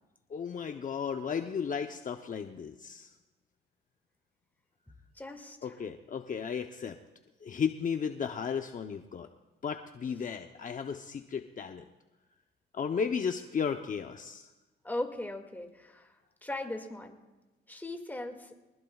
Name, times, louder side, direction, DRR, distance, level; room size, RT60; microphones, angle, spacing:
voice 1, 0.3-3.1 5.6-7.0 7.4-9.3 9.6-11.8 12.7-14.5, left 6 dB, 40° left, 6 dB, 0.8 m, -34 dB
voice 2, 5.2-5.7 14.8-16.1 16.4-17.2 17.7-18.5, left 1 dB, 10° left, 3 dB, 2.1 m, -38 dB
24.5 x 19.5 x 2.4 m, 1.1 s
cardioid pair, 90°, 20 cm